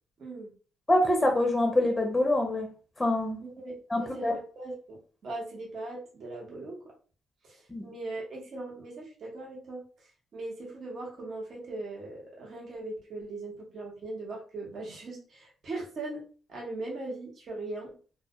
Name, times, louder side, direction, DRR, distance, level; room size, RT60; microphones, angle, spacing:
voice 1, 0.2-0.5 3.4-6.8 7.4-9.8 10.3-17.9, right 2 dB, 55° right, 0.9 m, -39 dB
voice 2, 0.9-2.7 3.0-3.4 3.9-4.3 7.7-7.9, left 1 dB, 15° left, 0.6 m, -25 dB
2.1 x 2.1 x 2.8 m
cardioid pair, 90°, 0 cm